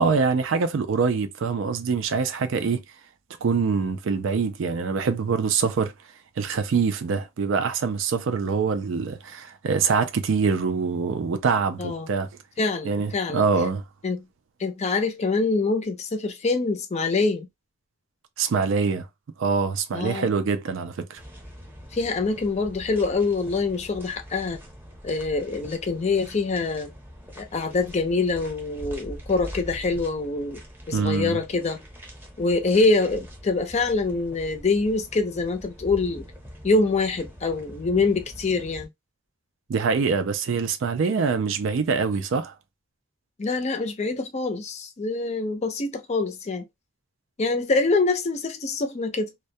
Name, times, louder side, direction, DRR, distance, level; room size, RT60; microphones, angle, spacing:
voice 1, 0.0-2.8 3.4-5.9 6.4-12.3 12.8-13.8 18.4-19.1 19.4-21.2 30.9-31.4 39.7-42.5, right 5 dB, 70° right, 0.4 m, -24 dB
voice 2, 11.8-12.1 12.6-13.4 14.0-14.2 14.6-17.5 19.9-20.3 21.9-24.6 25.0-26.9 27.4-30.6 30.9-31.8 32.4-36.3 36.6-38.9 43.4-46.6 47.4-49.3, left 3 dB, 35° left, 0.5 m, -25 dB
sound 1, 21.2-38.8, equal, 10° right, 0.8 m, -43 dB
2.2 x 2.1 x 2.6 m
head